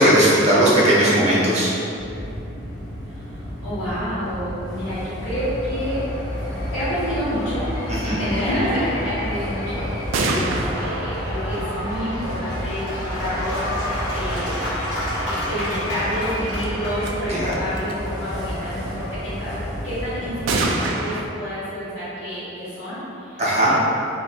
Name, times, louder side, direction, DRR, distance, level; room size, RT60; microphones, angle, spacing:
voice 1, 0.0-1.7 7.9-8.2 17.3-17.5 23.4-23.7, right 1 dB, 35° right, -8 dB, 0.6 m, -17 dB
sound 1, 1.9-20.5, equal, ahead, 0.9 m, -31 dB
voice 2, 3.1-6.0 6.7-7.6 8.0-14.6 15.3-23.4, equal, 65° left, -18 dB, 1.1 m, -29 dB
Cheering / Applause / Crowd, 5.1-19.7, left 1 dB, 40° left, 1.0 m, -32 dB
sound 2, 10.1-13.0 16.6-16.7 17.0-17.1 17.4-17.9 20.5-21.2, right 2 dB, 75° right, 0.3 m, -26 dB
2.6 x 2.3 x 3.2 m, 2.8 s
head